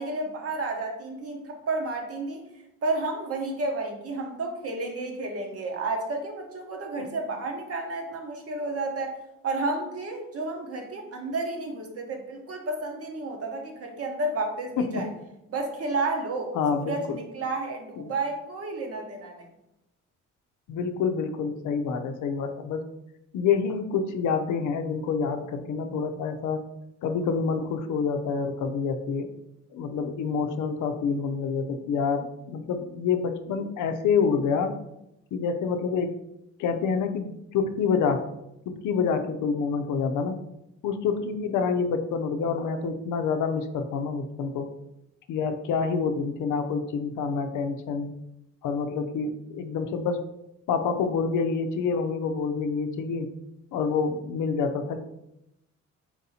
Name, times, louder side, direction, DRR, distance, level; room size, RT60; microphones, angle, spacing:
voice 1, 0.0-2.4 2.8-9.2 9.4-15.1 15.5-19.5, right 2 dB, 50° right, 2 dB, 1.1 m, -31 dB
voice 2, 16.5-17.2 20.7-22.9 23.3-26.6 27.0-29.3 29.7-34.8 35.3-36.2 36.6-38.3 38.7-40.4 40.8-44.7 45.3-48.1 48.6-50.2 50.7-53.3 53.7-55.0, left 5 dB, 80° left, 7 dB, 0.6 m, -27 dB
4.4 x 2.7 x 4.1 m, 0.86 s
cardioid pair, 90°, 30 cm